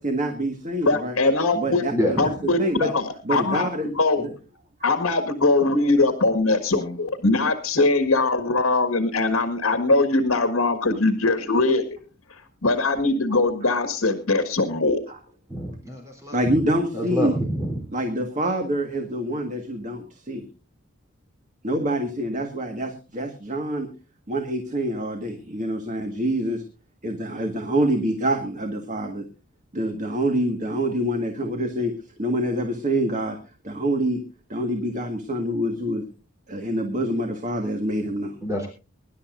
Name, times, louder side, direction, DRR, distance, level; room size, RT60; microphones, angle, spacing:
voice 1, 0.0-1.2 1.5-2.9 3.3-3.9 4.2-4.3 15.1-15.2 16.3-17.4 17.9-20.4 21.6-23.9 24.3-26.6 27.0-29.2 29.7-31.9 32.2-33.4 33.6-34.2 34.5-36.1 36.5-38.4, right 1 dB, 35° right, 5 dB, 1.7 m, -26 dB
voice 2, 0.9-1.8 2.2-4.3 4.8-11.8 12.3-15.0, left 3 dB, 70° left, 9 dB, 1.7 m, -21 dB
voice 3, 1.9-2.3 15.5-16.3 16.9-17.7 38.4-38.7, left 1 dB, 15° right, 1 dB, 3.6 m, -26 dB
24.0 x 11.5 x 2.6 m, 0.32 s
head